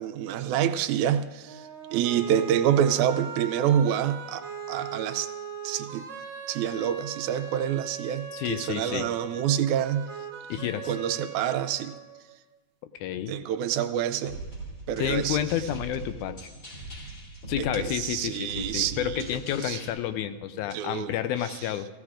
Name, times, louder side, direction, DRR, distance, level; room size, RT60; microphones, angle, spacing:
voice 1, 0.0-5.3 5.6-6.1 6.5-10.1 10.6-11.9 13.3-14.4 14.9-15.4 17.6-19.3 19.6-19.8 20.7-21.1 21.5-21.6, right 10 dB, 80° right, 9 dB, 1.9 m, -27 dB
sound 1, 1.4-12.4, right 7 dB, 65° right, 1.3 m, -40 dB
voice 2, 8.3-9.1 10.5-10.9 13.0-13.4 15.0-16.5 17.5-21.9, left 11 dB, 85° left, 11 dB, 2.0 m, -30 dB
sound 2, 14.3-19.9, right 2 dB, 30° left, 2.9 m, -40 dB
17.0 x 16.0 x 2.5 m, 1.2 s
omnidirectional pair, 3.5 m